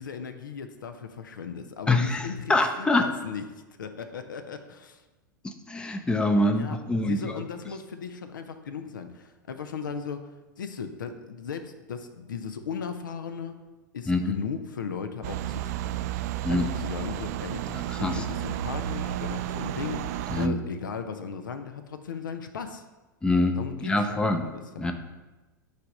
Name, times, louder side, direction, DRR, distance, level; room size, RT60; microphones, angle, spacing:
voice 1, 0.0-3.4 3.8-5.0 6.5-10.3 10.6-13.6 13.9-15.9 16.5-17.6 18.0-20.0 20.4-22.8 23.5-24.9, left 6 dB, 70° left, 8 dB, 0.6 m, -37 dB
voice 2, 1.9-3.1 5.4-7.4 14.1-14.4 16.4-16.7 17.7-18.2 20.3-20.6 23.2-24.4 24.8-24.9, left 2 dB, 10° left, 6 dB, 0.6 m, -25 dB
sound 1, 15.2-20.5, right 12 dB, 50° right, 0.4 m, -32 dB
9.1 x 3.5 x 5.2 m, 1.1 s
figure-of-eight pair, 90°, 11 cm